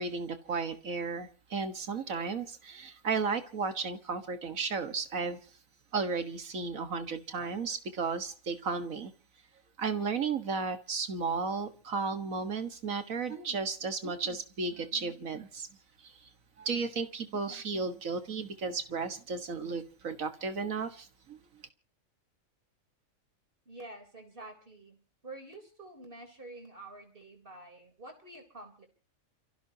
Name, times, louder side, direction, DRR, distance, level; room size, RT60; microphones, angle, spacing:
voice 1, 0.0-5.4 5.9-9.1 9.8-15.7 16.0-16.3 16.6-21.4, right 4 dB, 70° right, 2.0 m, -34 dB
voice 2, 23.7-25.0 25.2-28.9, right 2 dB, 40° right, 4.1 m, -48 dB
29.5 x 15.5 x 2.9 m
omnidirectional pair, 1.4 m